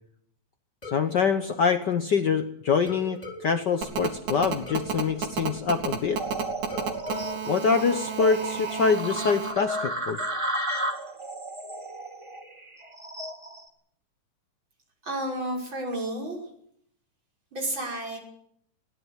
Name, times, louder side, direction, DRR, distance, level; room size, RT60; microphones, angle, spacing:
sound 1, 0.8-2.4 2.9-6.3 6.7-8.7, left 3 dB, 10° left, 3.1 m, -45 dB
voice 1, 0.9-6.2 7.4-10.2, left 5 dB, 90° left, 8 dB, 0.9 m, -25 dB
Telephone, 3.8-9.5, right 7 dB, 75° right, 4.0 m, -31 dB
sound 2, 6.2-13.7, right 1 dB, 15° right, 1.4 m, -33 dB
voice 2, 15.0-16.4 17.5-18.2, right 1 dB, 35° right, 0 dB, 6.6 m, -31 dB
22.0 x 17.0 x 8.2 m, 0.69 s
omnidirectional pair, 3.5 m